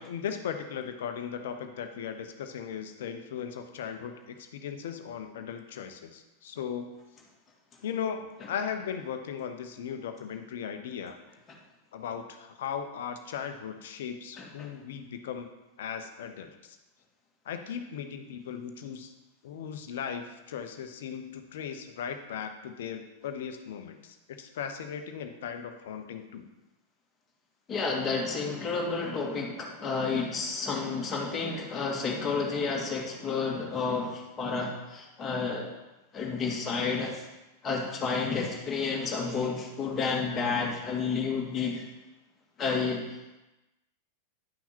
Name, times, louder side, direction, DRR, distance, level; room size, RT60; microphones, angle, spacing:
voice 1, 0.0-6.9 7.8-11.2 11.9-15.5 15.8-16.8 17.4-19.1 19.4-26.4, left 7 dB, 55° left, 7 dB, 0.9 m, -37 dB
voice 2, 27.7-35.7 36.1-37.2 37.6-41.8 42.6-43.0, left 4 dB, 20° left, -2 dB, 2.1 m, -30 dB
10.5 x 5.9 x 4.4 m, 1.0 s
figure-of-eight pair, 90°, 0 cm